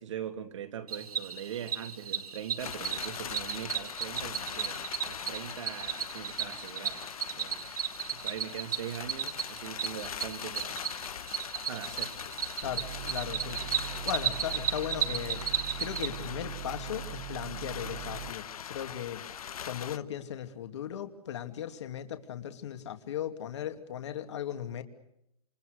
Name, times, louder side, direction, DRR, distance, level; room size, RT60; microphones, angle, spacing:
voice 1, 0.0-7.0 7.3-7.6 8.1-10.8 11.7-12.1, right 9 dB, 55° right, 7 dB, 2.8 m, -41 dB
Cricket, 0.9-16.1, right 8 dB, 80° right, 3.4 m, -35 dB
sound 1, 2.6-20.0, left 9 dB, 75° left, 1.1 m, -42 dB
voice 2, 12.6-13.6 14.0-15.4 15.8-19.2 19.7-24.8, left 10 dB, 50° left, 7 dB, 2.6 m, -37 dB
sound 2, 12.6-18.3, right 13 dB, 35° right, 1.0 m, -42 dB
28.0 x 27.5 x 6.6 m, 0.78 s
hypercardioid pair, 175°, 19 cm